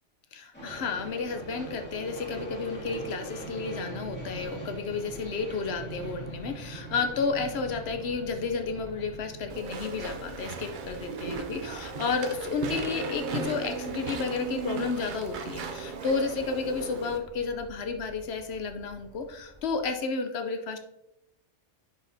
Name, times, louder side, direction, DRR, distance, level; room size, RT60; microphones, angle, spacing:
voice 1, 0.3-20.8, left 4 dB, 60° left, 7 dB, 0.9 m, -32 dB
sound 1, 0.5-19.9, right 2 dB, 10° left, 2.4 m, -44 dB
Walk footsteps / Chatter / Squeak, 9.5-17.2, right 4 dB, 50° right, 0.7 m, -36 dB
10.0 x 4.9 x 2.7 m, 0.90 s
omnidirectional pair, 1.3 m